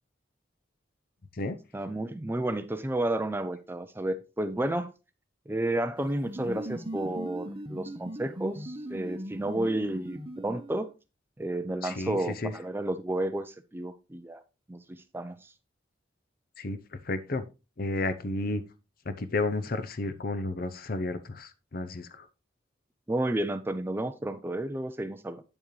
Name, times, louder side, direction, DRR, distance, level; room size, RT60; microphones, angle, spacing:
voice 1, 1.7-4.9 5.5-10.9 11.4-14.4 14.7-15.5 23.1-25.4, right 1 dB, 10° right, 0.4 m, -31 dB
sound 1, 6.0-10.9, equal, 25° right, 0.9 m, -39 dB
voice 2, 11.8-12.5 16.6-16.8 17.1-17.4 17.8-18.6 19.1-22.1, left 2 dB, 50° left, 0.7 m, -32 dB
8.6 x 7.1 x 3.1 m
head